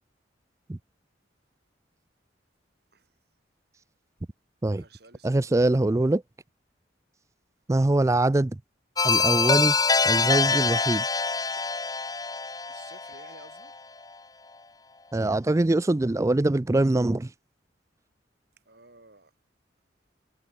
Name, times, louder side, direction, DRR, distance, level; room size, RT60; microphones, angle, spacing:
voice 1, 4.7-5.7 12.7-13.8 18.7-19.3, right 3 dB, 60° right, 6.6 m, -53 dB
voice 2, 5.2-6.2 7.7-8.6 9.0-9.8 10.0-11.0 15.1-17.3, right 2 dB, 15° right, 0.4 m, -23 dB
sound 1, 9.0-13.7, left 4 dB, 20° left, 1.4 m, -25 dB
head